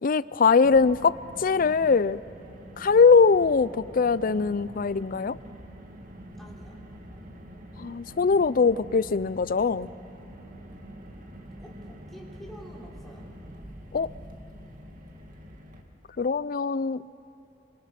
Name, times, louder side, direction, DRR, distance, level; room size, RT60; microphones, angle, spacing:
voice 1, 0.0-2.2 2.8-5.4 7.8-9.9 13.9-14.1 16.2-17.0, left 5 dB, 50° left, 18 dB, 0.5 m, -22 dB
Car, 0.6-15.8, equal, 45° right, 2.2 m, -45 dB
voice 2, 6.4-6.8 11.6-13.3, equal, ahead, -3 dB, 4.0 m, -48 dB
27.0 x 25.5 x 5.9 m, 2.8 s
head